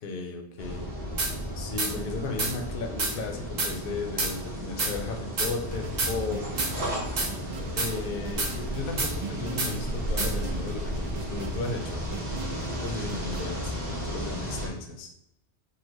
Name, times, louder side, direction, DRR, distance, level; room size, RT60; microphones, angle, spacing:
voice 1, 0.0-0.9 1.5-6.5 7.7-12.0 12.8-15.1, left 3 dB, 60° left, 3 dB, 0.7 m, -35 dB
sound 1, 0.6-14.7, equal, 80° right, 1.7 m, -34 dB
sound 2, 1.2-1.3 1.8-1.9 2.4-2.5 3.0-3.1 3.6-3.7 4.2-4.3 4.8-4.9 5.4-5.5 6.0-6.1 6.6-6.7 7.2-7.3 7.8-7.9 8.4-8.5 9.0-9.1 9.6-9.7 10.2-10.3, right 3 dB, 45° right, 0.8 m, -27 dB
sound 3, 5.7-13.4, right 3 dB, 60° right, 0.4 m, -38 dB
4.1 x 2.1 x 2.9 m, 0.76 s
omnidirectional pair, 1.2 m